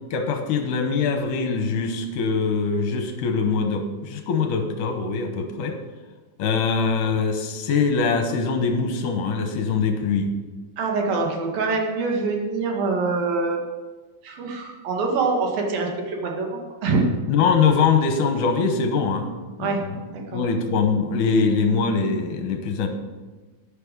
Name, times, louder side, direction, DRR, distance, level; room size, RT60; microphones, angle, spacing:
voice 1, 0.0-5.8 6.4-10.3 17.3-19.3 19.6-20.1 20.3-22.9, left 5 dB, 70° left, 5 dB, 2.2 m, -23 dB
voice 2, 10.8-13.6 14.2-17.1 19.6-19.8 20.1-20.5, right 3 dB, 70° right, 1 dB, 3.6 m, -25 dB
12.0 x 10.0 x 5.3 m, 1.3 s
omnidirectional pair, 4.4 m